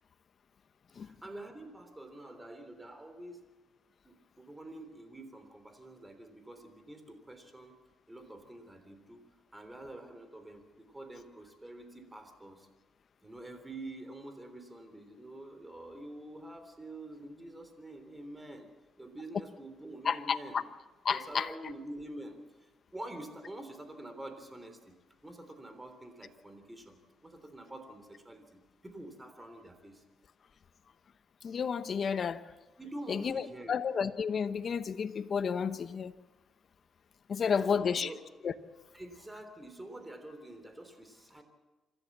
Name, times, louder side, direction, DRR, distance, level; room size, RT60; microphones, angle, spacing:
voice 1, 1.0-3.4 4.0-7.7 8.1-9.2 9.5-12.7 13.2-18.7 19.0-20.6 21.1-22.4 22.9-24.8 25.2-27.0 27.2-30.0 32.8-33.8 37.6-38.2 38.9-41.4, right 1 dB, 10° right, 3.5 m, -47 dB
voice 2, 20.0-20.6 21.0-21.5 31.4-32.4 33.1-36.1 37.3-38.1 38.4-38.5, left 6 dB, 50° left, 1.0 m, -31 dB
26.5 x 14.0 x 7.4 m
cardioid pair, 90°, 0 cm